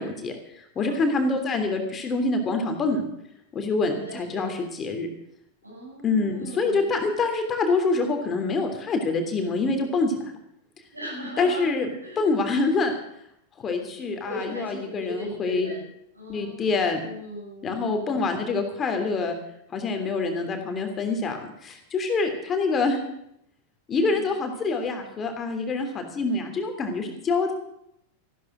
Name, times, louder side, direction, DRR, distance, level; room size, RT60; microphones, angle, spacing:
voice 1, 0.0-3.1 3.5-5.1 6.0-10.3 11.4-12.9 13.6-15.7 16.3-17.0 17.6-19.4 19.7-23.0 23.9-27.5, left 3 dB, 25° left, 5 dB, 3.1 m, -26 dB
voice 2, 0.7-1.2 3.8-4.5 5.6-6.9 10.9-11.7 12.0-12.2 14.3-15.9 16.1-18.1 23.9-24.2, equal, 85° right, -2 dB, 7.1 m, -38 dB
14.5 x 13.0 x 6.3 m, 0.77 s
figure-of-eight pair, 90°, 0 cm